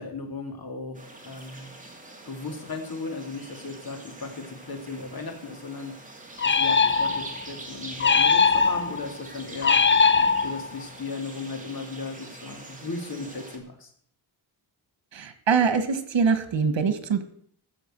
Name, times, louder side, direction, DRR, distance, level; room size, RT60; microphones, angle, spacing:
voice 1, 0.0-1.8 2.2-6.0 6.4-9.8 10.4-13.9, left 3 dB, 50° left, 3 dB, 2.8 m, -36 dB
sound 1, 0.9-13.6, right 2 dB, 15° right, 2.5 m, -44 dB
sound 2, 6.4-7.4 8.0-9.0 9.6-10.8, left 5 dB, 25° left, 0.5 m, -20 dB
voice 2, 15.1-17.2, right 6 dB, 75° right, 10 dB, 1.7 m, -23 dB
14.5 x 7.0 x 7.6 m, 0.62 s
wide cardioid pair, 135°, 45 cm